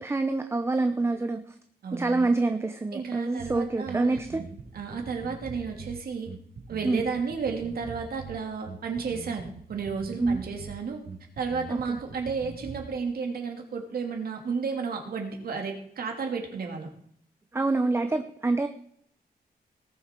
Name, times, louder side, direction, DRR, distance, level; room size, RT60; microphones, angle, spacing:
voice 1, 0.0-1.4 1.9-4.4 6.8-7.0 10.2-10.4 11.7-12.0 17.5-18.7, right 3 dB, 15° right, 7 dB, 0.6 m, -26 dB
voice 2, 1.8-2.3 2.9-4.2 4.7-6.3 6.7-11.0 11.4-16.9, right 5 dB, 70° right, 2 dB, 2.7 m, -32 dB
Bass guitar, 3.4-13.0, right 5 dB, 85° right, 2.9 m, -43 dB
18.5 x 7.1 x 4.5 m, 0.67 s
wide cardioid pair, 165°, 16 cm